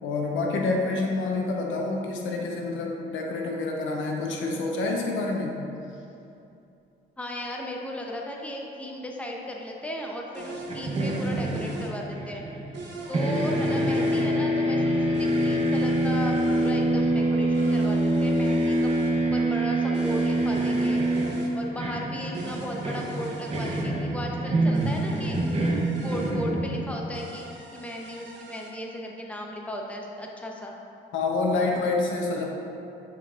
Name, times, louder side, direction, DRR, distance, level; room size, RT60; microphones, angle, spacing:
voice 1, 0.0-5.6 31.1-32.4, left 3 dB, 75° left, 0 dB, 0.9 m, -27 dB
voice 2, 7.2-12.6 13.1-18.9 19.3-21.0 21.5-25.4 26.0-30.8, left 1 dB, 5° left, -1 dB, 0.7 m, -36 dB
sound 1, 10.3-11.9 12.7-14.3 15.1-16.7 17.5-19.1 19.9-21.5 22.3-23.9 24.7-26.3 27.1-28.7, right 3 dB, 65° right, 0.9 m, -42 dB
sound 2, 10.7-12.9 13.1-27.1, right 1 dB, 30° right, 0.8 m, -25 dB
9.1 x 4.7 x 2.4 m, 2.7 s
cardioid pair, 90°, 20 cm